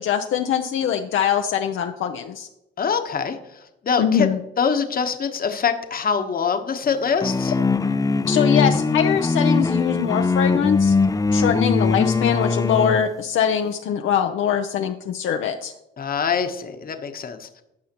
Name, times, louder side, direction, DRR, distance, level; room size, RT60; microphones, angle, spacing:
voice 1, 0.0-2.5 4.0-4.4 8.3-10.9 11.3-15.7, left 8 dB, 70° left, 5 dB, 0.6 m, -22 dB
voice 2, 2.8-3.4 3.8-4.3 4.6-7.5 16.0-17.6, left 6 dB, 45° left, 7 dB, 1.1 m, -24 dB
sound 1, 7.2-13.1, left 4 dB, 15° left, 0.4 m, -21 dB
14.5 x 5.6 x 3.0 m, 0.88 s
supercardioid pair, 75°, 21 cm